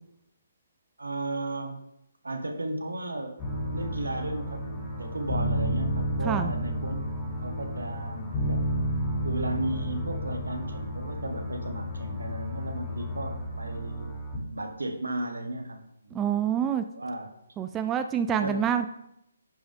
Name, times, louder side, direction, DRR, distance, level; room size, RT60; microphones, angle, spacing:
voice 1, 1.0-1.8 2.2-3.4 3.7-7.0 7.4-8.7 9.2-14.2 14.5-16.3 16.9-17.3 18.3-18.6, right 2 dB, 85° right, 5 dB, 1.4 m, -35 dB
sound 1, 3.4-14.4, equal, 15° left, 3.0 m, -31 dB
voice 2, 16.1-16.8 17.6-18.9, right 8 dB, 15° right, 8 dB, 0.4 m, -27 dB
10.5 x 5.2 x 3.6 m, 0.81 s
figure-of-eight pair, 145°, 0 cm